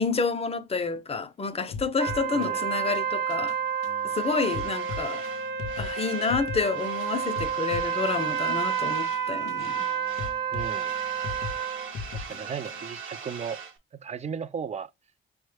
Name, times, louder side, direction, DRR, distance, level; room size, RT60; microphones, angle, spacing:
voice 1, 0.0-3.5 4.0-5.2 5.8-9.9, left 4 dB, 30° left, 0.6 m, -29 dB
sound 1, 1.7-12.9, left 5 dB, 85° left, 0.5 m, -41 dB
sound 2, 2.0-11.9, right 8 dB, 60° right, 1.0 m, -30 dB
voice 2, 2.3-2.6 10.5-10.9 12.1-13.6 13.9-14.9, right 6 dB, 35° right, 0.4 m, -36 dB
sound 3, 4.1-6.4 6.7-9.3 9.5-13.8, right 6 dB, 80° right, 0.9 m, -42 dB
5.3 x 2.1 x 3.2 m
cardioid pair, 85°, 21 cm